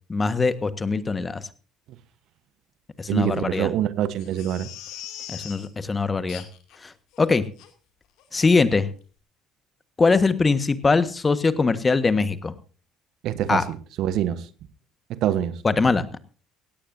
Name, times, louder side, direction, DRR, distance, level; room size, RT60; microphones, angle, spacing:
voice 1, 0.1-1.4 3.0-3.7 5.3-6.4 6.8-6.9 7.2-7.5 8.3-8.9 10.0-12.5 13.5-13.6 15.6-16.0, left 4 dB, 25° left, 13 dB, 1.5 m, -22 dB
voice 2, 3.1-4.7 13.2-14.4 15.1-15.9, right 11 dB, 60° right, 15 dB, 1.1 m, -25 dB
Crying sobbing, 4.2-5.7 6.3-6.8 7.1-7.2 7.6-7.7 8.2-8.3 8.6-8.7, left 11 dB, 65° left, 2.5 m, -40 dB
17.5 x 17.0 x 2.7 m, 0.38 s
hypercardioid pair, 60°, 0 cm